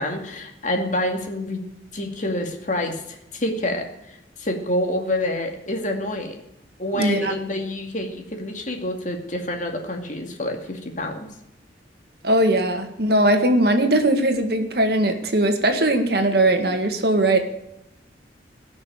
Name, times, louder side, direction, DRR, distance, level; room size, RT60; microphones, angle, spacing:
voice 1, 0.0-1.6 1.9-6.4 6.8-11.1, left 1 dB, 45° left, 3 dB, 2.2 m, -27 dB
voice 2, 6.9-7.3 12.2-17.4, right 1 dB, 60° right, 5 dB, 1.9 m, -19 dB
17.5 x 6.3 x 8.9 m, 0.84 s
head